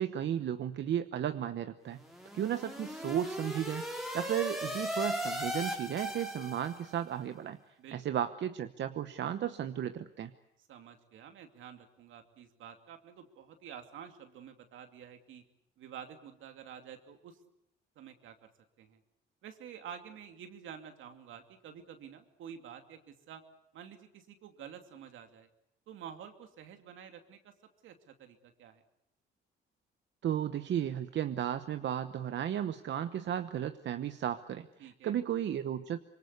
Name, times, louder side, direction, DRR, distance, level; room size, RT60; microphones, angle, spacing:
voice 1, 0.0-2.0 2.3-3.9 4.1-7.6 7.9-10.3 30.2-36.0, right 10 dB, 65° right, 10 dB, 1.0 m, -34 dB
sound 1, 1.9-7.0, equal, ahead, 3.9 m, -37 dB
voice 2, 10.7-15.4 15.8-17.4 18.0-18.5 18.8-19.0 19.4-23.4 23.7-25.5 25.9-27.5 27.8-28.8 34.8-35.2, right 8 dB, 80° right, 6 dB, 2.7 m, -49 dB
25.5 x 23.0 x 8.2 m, 0.78 s
cardioid pair, 90°, 20 cm